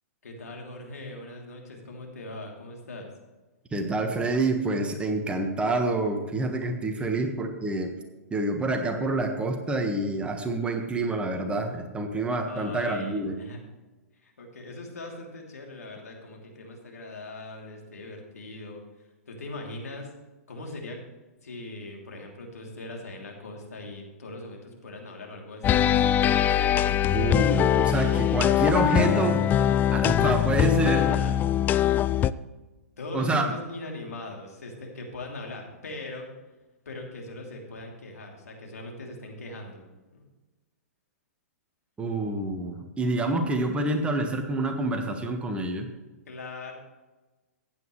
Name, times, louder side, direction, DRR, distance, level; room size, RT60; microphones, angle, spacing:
voice 1, 0.2-3.1 6.8-7.3 12.4-13.6 14.1-20.1 20.5-21.0 21.4-25.9 31.1-31.3 33.0-36.3 36.8-39.9 40.1-40.2 46.3-46.7, left 2 dB, 80° left, 0 dB, 3.1 m, -40 dB
voice 2, 3.7-7.9 8.3-13.4 27.1-29.4 29.9-31.1 33.1-33.5 42.0-45.9, right 2 dB, 15° right, 4 dB, 1.5 m, -27 dB
sound 1, 25.6-32.3, left 11 dB, 20° left, 0.3 m, -22 dB
15.0 x 9.7 x 3.2 m, 1.1 s
hypercardioid pair, 115°, 8 cm